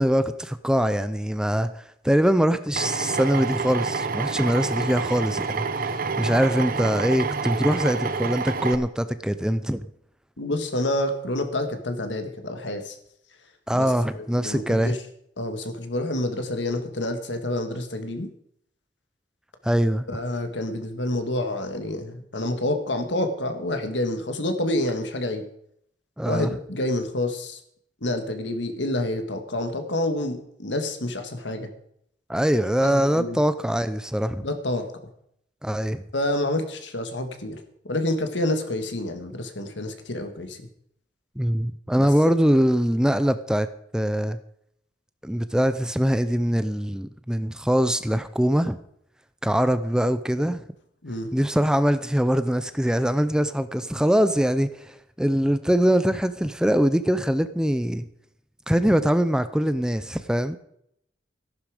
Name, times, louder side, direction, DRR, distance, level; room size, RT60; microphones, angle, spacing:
voice 1, 0.0-9.9 13.7-14.9 19.6-20.1 26.2-26.5 32.3-34.4 35.6-36.0 41.4-43.7 43.9-44.4 45.2-48.8 49.4-50.6 51.3-58.1 58.7-60.6, equal, 5° right, 12 dB, 0.5 m, -23 dB
Drill, 2.8-8.8, right 4 dB, 50° right, 0.8 m, -28 dB
voice 2, 10.4-13.0 13.7-15.0 15.4-18.3 20.1-25.4 26.3-27.6 28.0-31.7 32.8-33.4 34.4-34.9 36.1-40.7 42.0-42.1 51.0-51.3, left 1 dB, 80° left, 7 dB, 1.9 m, -28 dB
14.0 x 11.5 x 5.0 m, 0.72 s
head